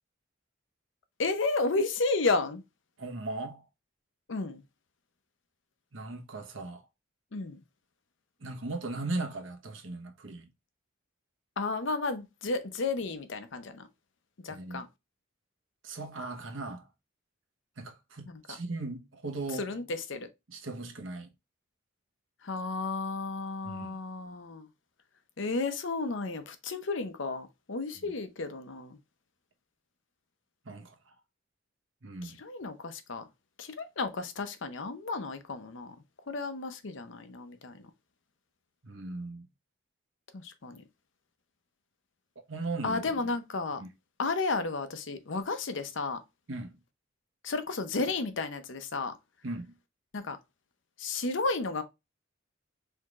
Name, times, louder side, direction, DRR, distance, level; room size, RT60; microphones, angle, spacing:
voice 1, 1.2-2.6 4.3-4.6 7.3-7.6 11.6-13.9 14.4-14.9 18.3-18.6 19.6-20.3 22.4-24.7 25.4-29.0 32.2-33.2 33.6-36.0 36.3-37.9 40.3-40.8 42.8-43.8 44.2-46.2 47.4-49.1 50.1-50.4 51.0-51.8, left 3 dB, 65° left, 0.7 m, -32 dB
voice 2, 3.0-3.6 5.9-6.8 8.4-10.5 14.5-14.8 15.8-16.9 17.8-19.7 20.5-21.3 23.6-24.0 28.0-28.1 30.6-31.1 32.0-32.4 38.8-39.5 42.5-43.0 43.8-43.9 46.5-46.8 49.4-49.7, right 2 dB, 70° right, 1.1 m, -38 dB
4.6 x 3.6 x 2.4 m
head